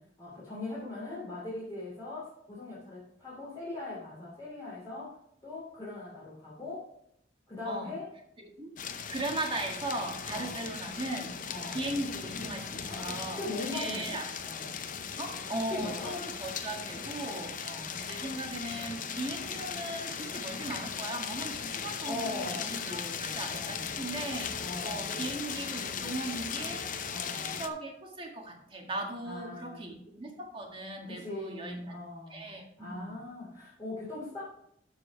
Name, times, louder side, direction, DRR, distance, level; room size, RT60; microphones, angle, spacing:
voice 1, 0.0-6.9 7.5-8.1 10.3-10.7 11.5-11.9 12.9-14.2 14.4-14.9 15.7-16.1 17.6-18.0 22.0-24.0 24.6-25.3 27.1-27.5 29.2-29.9 31.0-32.5 32.8-34.4, left 2 dB, 20° left, -8 dB, 2.8 m, -40 dB
voice 2, 8.4-8.7 9.1-11.3 11.7-14.2 15.2-32.0 32.3-33.2, right 2 dB, 30° right, 1 dB, 1.8 m, -38 dB
sound 1, 8.8-27.7, left 6 dB, 45° left, 0.7 m, -38 dB
13.0 x 4.9 x 4.7 m, 0.74 s
head